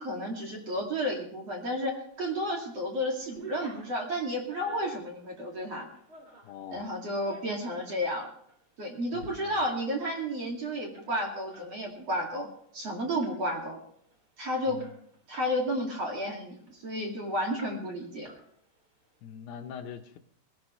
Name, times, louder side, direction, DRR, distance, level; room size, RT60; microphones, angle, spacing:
voice 1, 0.0-5.9 6.7-8.3 8.8-12.5 12.7-13.8 14.4-14.8 15.3-18.3, equal, 40° right, 0 dB, 3.0 m, -32 dB
sound 1, 2.1-2.7 3.0-6.6 7.1-8.0 8.5-8.6 9.0-9.3 9.6-9.7 10.0-12.3 12.6-12.8 13.2-13.7 14.1-14.2 14.4-15.6 15.9-17.1 17.6-18.0 18.2-18.9, right 2 dB, 25° right, 3.0 m, -50 dB
voice 2, 6.4-6.9 9.1-9.6 14.7-15.0 19.2-20.2, left 8 dB, 75° left, 5 dB, 2.7 m, -43 dB
20.0 x 17.0 x 3.2 m, 0.68 s
omnidirectional pair, 5.1 m